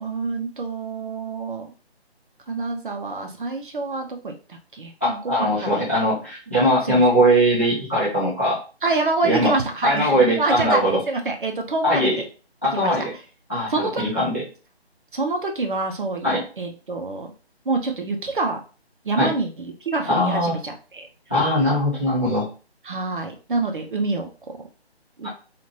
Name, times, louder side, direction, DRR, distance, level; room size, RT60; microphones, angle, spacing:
voice 1, 0.0-1.7 2.5-5.7 6.5-6.6 6.8-7.0 8.8-12.2 12.7-13.0 13.7-14.0 15.1-17.3 17.7-18.6 19.0-21.1 22.8-24.3 25.2-25.3, right 3 dB, 50° right, 3 dB, 0.6 m, -26 dB
voice 2, 5.0-8.6 9.2-9.5 9.8-11.0 11.8-12.2 12.6-13.1 13.5-13.7 14.0-14.4 16.2-16.4 19.2-19.3 20.0-20.5 21.3-22.5 25.2-25.3, equal, 15° left, -9 dB, 0.5 m, -20 dB
2.8 x 2.4 x 3.0 m, 0.35 s
figure-of-eight pair, 155°, 32 cm